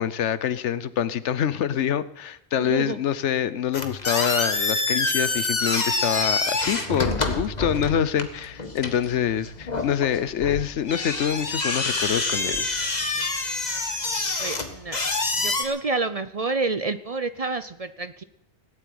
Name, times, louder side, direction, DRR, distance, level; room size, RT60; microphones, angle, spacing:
voice 1, 0.0-12.7, left 9 dB, 85° left, 16 dB, 1.1 m, -26 dB
voice 2, 2.6-3.0 13.2-13.3 14.0-14.1 14.4-15.0 15.4-18.2, right 3 dB, 40° right, 12 dB, 0.6 m, -29 dB
sound 1, 3.7-15.6, left 3 dB, 40° left, 1.7 m, -27 dB
18.0 x 8.3 x 9.5 m, 0.78 s
omnidirectional pair, 1.2 m